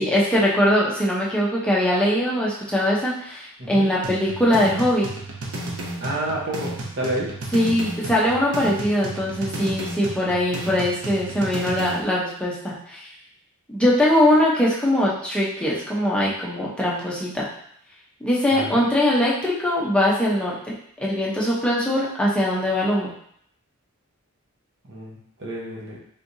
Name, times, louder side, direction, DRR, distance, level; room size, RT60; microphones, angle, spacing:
voice 1, 0.0-5.1 7.5-13.0 13.7-17.4 18.2-23.1, left 1 dB, 5° left, -6 dB, 0.7 m, -21 dB
sound 1, 4.0-12.0, right 1 dB, 70° right, 0.6 m, -33 dB
voice 2, 6.0-7.3 18.5-18.8 24.9-26.0, right 1 dB, 55° right, -4 dB, 1.0 m, -29 dB
3.5 x 3.2 x 2.7 m, 0.68 s
head